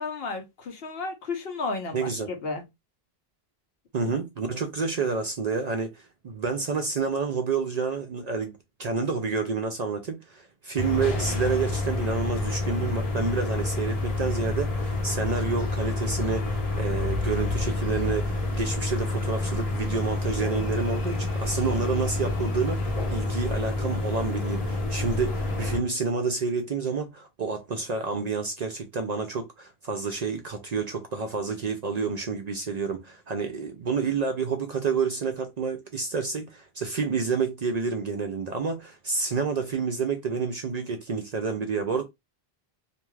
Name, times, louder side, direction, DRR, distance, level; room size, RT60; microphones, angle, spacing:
voice 1, 0.0-2.6, left 3 dB, 75° left, 1.0 m, -33 dB
voice 2, 1.9-2.3 3.9-42.0, right 5 dB, 55° right, 0.5 m, -29 dB
sound 1, 10.8-25.8, left 2 dB, 40° left, 0.8 m, -28 dB
2.5 x 2.3 x 3.1 m
omnidirectional pair, 1.0 m